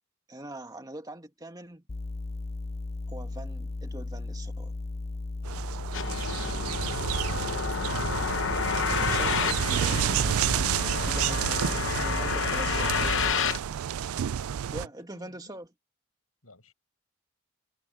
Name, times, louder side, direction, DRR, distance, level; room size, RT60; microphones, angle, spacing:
voice 1, 0.3-1.8 3.1-4.7 9.1-10.2 11.0-13.3 14.7-15.7, right 1 dB, 20° right, 2.2 m, -42 dB
sound 1, 1.9-13.3, left 2 dB, 30° left, 0.5 m, -36 dB
sound 2, 5.5-14.9, right 9 dB, 85° right, 0.4 m, -30 dB
sound 3, 5.9-13.6, left 6 dB, 60° left, 0.9 m, -30 dB
voice 2, 14.8-15.6 16.4-16.7, left 1 dB, 85° left, 7.7 m, -57 dB
head